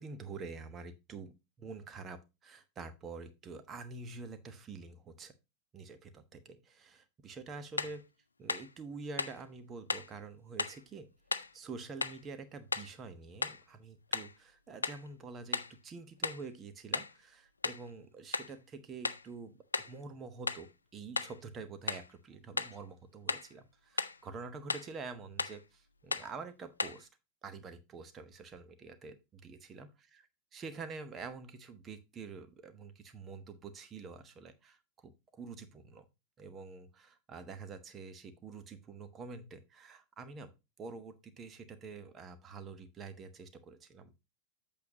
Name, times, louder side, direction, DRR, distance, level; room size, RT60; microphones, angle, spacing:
voice 1, 0.0-5.3 5.7-8.0 8.4-11.1 11.5-27.1 27.4-30.1 30.5-34.8 35.0-36.0 36.4-40.5 40.8-44.1, right 4 dB, 25° right, 10 dB, 1.2 m, -47 dB
sound 1, 7.8-8.0 8.5-8.7 9.2-9.4 9.9-10.1 10.6-10.8 11.3-11.5 12.0-12.2 12.7-13.0 13.4-13.6 14.1-14.4 14.8-15.1 15.5-15.8 16.2-16.5 16.9-17.2 17.6-17.9 18.3-18.6 19.0-19.3 19.7-20.0 20.5-20.7 21.2-21.4 21.9-22.1 22.6-22.8 23.3-23.5 24.0-24.2 24.7-24.9 25.4-25.6 26.1-26.3 26.8-27.0, left 4 dB, 75° left, 0.4 m, -36 dB
8.3 x 6.8 x 2.8 m, 0.25 s
figure-of-eight pair, 90°, 0 cm